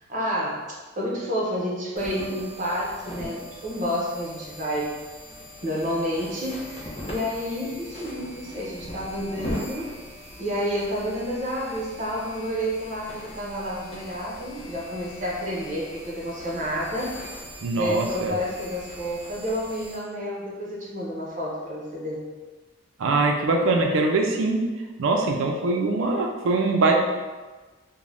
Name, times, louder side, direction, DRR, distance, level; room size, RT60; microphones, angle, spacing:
voice 1, 0.1-0.7 1.0-4.9 5.6-10.0 10.4-17.2 17.7-22.2, equal, 40° right, -4 dB, 0.7 m, -30 dB
sound 1, 2.0-20.0, left 1 dB, 30° left, 0.5 m, -40 dB
voice 2, 17.6-18.4 23.0-24.7 25.0-27.0, right 3 dB, 75° right, 2 dB, 0.4 m, -22 dB
2.5 x 2.1 x 3.2 m, 1.3 s
head